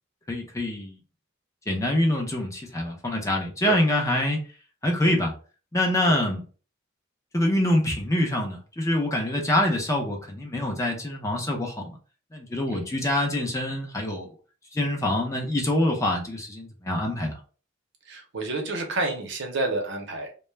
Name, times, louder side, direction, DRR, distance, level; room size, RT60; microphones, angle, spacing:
voice 1, 0.3-1.0 1.7-4.4 4.8-5.3 5.7-6.4 7.3-12.0 12.3-14.3 14.7-17.3, left 1 dB, 15° left, 0.6 m, -25 dB
voice 2, 18.0-20.3, right 2 dB, 60° right, 0.7 m, -29 dB
2.2 x 2.1 x 3.1 m
head